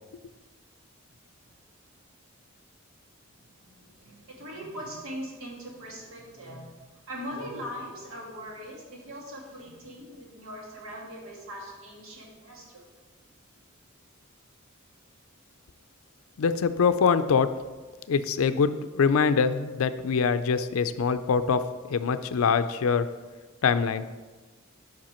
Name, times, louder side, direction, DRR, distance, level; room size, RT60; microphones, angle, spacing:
voice 1, 3.4-6.8 7.1-12.9, equal, 85° right, -1 dB, 1.8 m, -41 dB
voice 2, 16.4-17.5 18.1-18.7 18.9-21.6 21.9-23.1 23.6-24.1, left 5 dB, 85° left, 12 dB, 0.4 m, -23 dB
7.6 x 5.9 x 4.4 m, 1.3 s
head